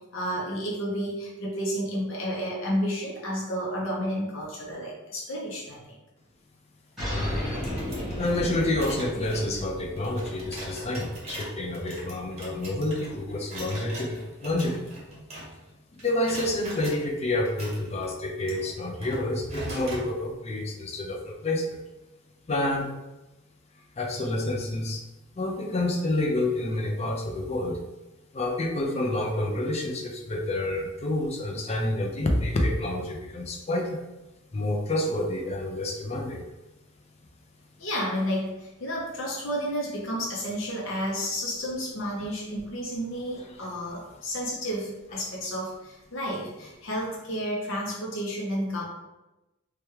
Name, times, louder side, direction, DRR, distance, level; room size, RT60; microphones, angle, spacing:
voice 1, 0.1-5.8 37.8-48.9, equal, 60° left, -4 dB, 0.7 m, -31 dB
sound 1, 7.0-12.0, equal, ahead, 1.3 m, -35 dB
voice 2, 7.1-7.4 8.2-14.8 15.9-21.8 22.5-22.9 24.0-25.0 25.4-27.8 28.3-34.0 34.5-36.4, left 1 dB, 30° left, 2 dB, 0.4 m, -28 dB
sound 2, 7.5-15.7 16.0-17.0 17.4-20.1, right 1 dB, 30° right, 0.8 m, -41 dB
3.3 x 2.2 x 3.0 m, 1.0 s
head